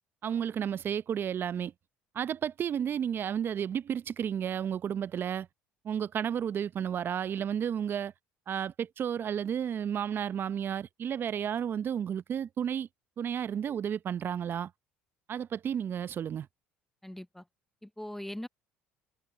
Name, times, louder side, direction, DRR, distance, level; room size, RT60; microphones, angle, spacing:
voice 1, 0.2-1.7 2.1-5.5 5.8-8.1 8.5-12.9 13.2-14.7 15.3-16.5, right 8 dB, 45° right, 0.7 m, -32 dB
voice 2, 17.0-17.4 17.8-18.5, left 1 dB, 5° left, 0.6 m, -40 dB
hypercardioid pair, 65°, 5 cm